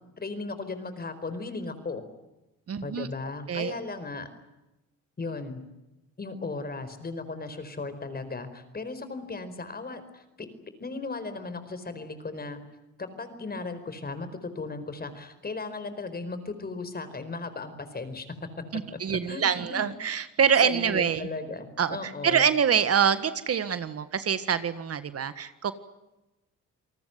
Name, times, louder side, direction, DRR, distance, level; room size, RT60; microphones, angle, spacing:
voice 1, 0.2-2.0 2.8-4.3 5.2-5.6 6.2-12.6 13.0-18.3 19.1-19.9 20.6-22.5, left 3 dB, 30° left, 11 dB, 4.7 m, -36 dB
voice 2, 2.7-3.1 3.5-3.8 18.7-21.3 21.8-25.7, right 7 dB, 50° right, 12 dB, 1.7 m, -25 dB
28.5 x 19.5 x 9.3 m, 0.99 s
cardioid pair, 90°, 30 cm